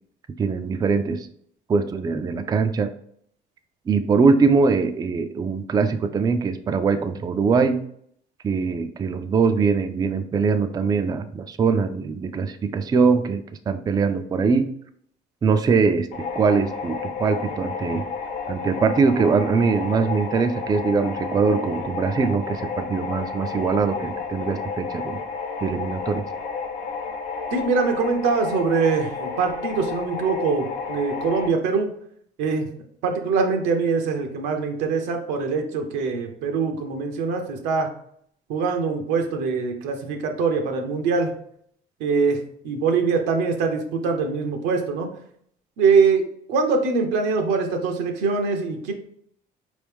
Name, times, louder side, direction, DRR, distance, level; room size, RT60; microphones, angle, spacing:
voice 1, 0.4-1.3 1.7-2.9 3.9-7.8 8.4-14.7 15.4-16.1 16.3-18.1 18.5-25.2 25.6-26.2, right 5 dB, 25° right, 9 dB, 0.3 m, -22 dB
sound 1, 16.1-31.5, left 5 dB, 90° left, 0.7 m, -31 dB
voice 2, 27.5-31.9 32.4-32.7 33.0-37.9 38.5-41.3 42.0-45.1 45.8-48.9, right 5 dB, 90° right, 4 dB, 0.8 m, -23 dB
4.5 x 3.1 x 3.5 m, 0.66 s
cardioid pair, 110°, 17 cm